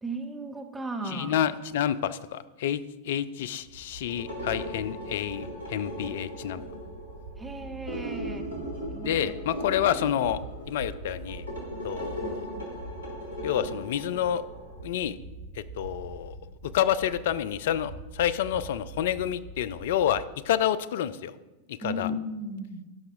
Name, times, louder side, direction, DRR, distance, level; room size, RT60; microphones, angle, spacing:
voice 1, 0.0-1.3 7.4-8.5 8.9-9.2 12.2-12.4 21.8-22.8, equal, 10° right, 4 dB, 0.8 m, -35 dB
voice 2, 1.1-6.6 9.0-10.4 10.7-11.5 11.8-12.4 13.4-14.4 14.8-15.2 15.8-16.3 16.7-21.3 21.7-22.1, left 10 dB, 55° left, 15 dB, 0.3 m, -28 dB
sound 1, 3.6-20.2, right 3 dB, 60° right, 1.6 m, -44 dB
sound 2, 4.1-14.8, equal, 85° right, 2.4 m, -38 dB
12.5 x 5.7 x 2.6 m, 1.1 s
figure-of-eight pair, 90°, 0 cm